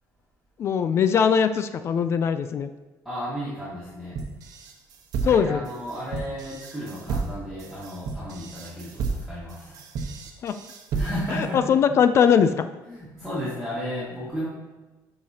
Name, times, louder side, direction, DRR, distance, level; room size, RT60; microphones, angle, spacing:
voice 1, 0.6-2.7 5.2-5.6 10.4-10.5 11.5-12.7, left 7 dB, 40° left, 10 dB, 0.3 m, -20 dB
voice 2, 3.1-4.2 5.2-9.9 11.0-11.6 12.9-14.5, equal, ahead, -10 dB, 1.9 m, -33 dB
sound 1, 4.1-11.4, right 4 dB, 60° right, 1.0 m, -32 dB
11.5 x 4.9 x 2.8 m, 1.2 s
cardioid pair, 145°, 7 cm